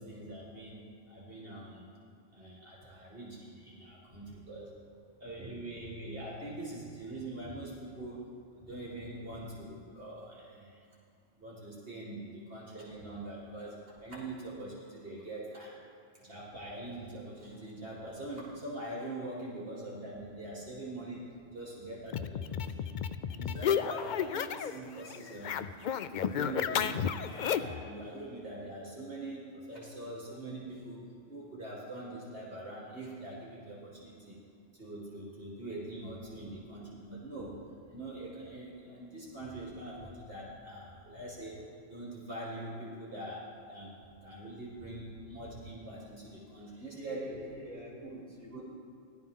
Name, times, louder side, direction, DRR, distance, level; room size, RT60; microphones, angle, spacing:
voice 1, 0.0-1.9 2.3-4.7 5.2-8.3 8.6-10.8 11.4-15.7 16.2-22.9 23.3-25.6 26.2-34.4 34.8-37.6 37.9-41.6 41.9-43.9 44.2-47.2 48.0-48.2 48.5-48.7, right 1 dB, 50° right, -5 dB, 2.2 m, -43 dB
sound 1, 22.1-24.8 25.0-27.8, left 8 dB, 70° left, 0.4 m, -32 dB
voice 2, 46.9-48.7, left 1 dB, 5° left, -8 dB, 3.3 m, -46 dB
18.5 x 11.5 x 3.7 m, 2.4 s
omnidirectional pair, 1.3 m